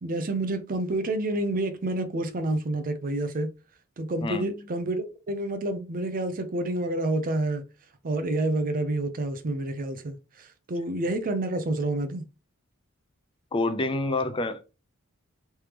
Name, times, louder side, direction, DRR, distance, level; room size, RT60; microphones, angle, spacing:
voice 1, 0.0-3.5 4.0-7.7 8.0-12.2, right 2 dB, 40° right, 0.5 m, -28 dB
voice 2, 4.2-4.5 13.5-14.6, left 2 dB, 25° left, 0.4 m, -27 dB
3.3 x 3.3 x 2.9 m
head